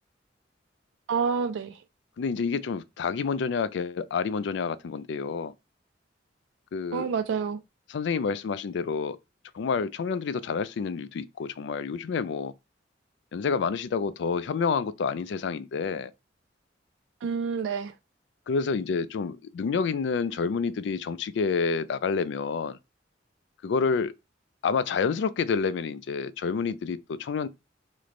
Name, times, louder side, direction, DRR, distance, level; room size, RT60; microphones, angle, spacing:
voice 1, 1.1-1.8 6.9-7.6 17.2-17.9, right 6 dB, 75° right, 0.3 m, -28 dB
voice 2, 2.2-5.5 6.7-7.1 7.9-9.2 9.5-12.5 13.3-16.1 18.5-22.8 23.6-24.1 24.6-27.5, left 5 dB, 70° left, 0.3 m, -28 dB
3.1 x 2.1 x 3.8 m
head